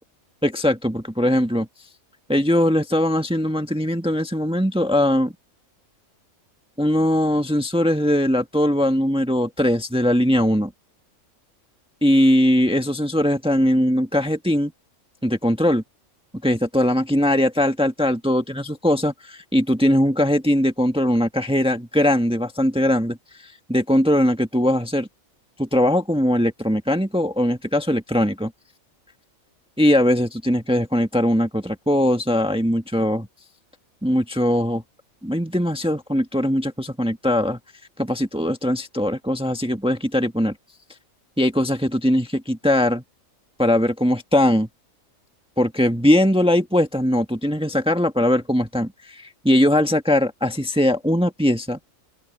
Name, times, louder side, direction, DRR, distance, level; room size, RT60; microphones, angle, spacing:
voice 1, 0.4-1.7 2.3-5.3 6.8-10.7 12.0-14.7 15.2-15.8 16.4-23.2 23.7-25.1 25.6-28.5 29.8-33.3 34.0-34.8 35.2-37.6 38.0-40.5 41.4-43.0 43.6-44.7 45.6-51.8, left 1 dB, 5° right, 1.4 m, -20 dB
open air
omnidirectional pair, 1.4 m